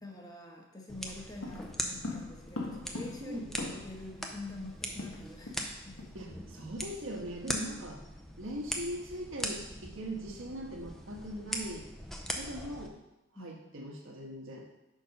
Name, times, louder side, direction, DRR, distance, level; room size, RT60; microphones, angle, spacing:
voice 1, 0.0-6.0 7.5-7.8 13.3-13.6, left 2 dB, 20° left, 0 dB, 1.1 m, -46 dB
sound 1, 0.9-12.9, equal, ahead, 0.5 m, -41 dB
sound 2, 1.4-4.1 4.4-4.5 4.7-5.7 6.0-6.2 6.6-6.8, left 2 dB, 75° left, 1.2 m, -41 dB
voice 2, 6.1-8.0 8.4-11.9 12.3-13.0 13.3-14.7, right 1 dB, 65° right, 0 dB, 1.4 m, -40 dB
6.5 x 5.3 x 5.3 m, 0.95 s
head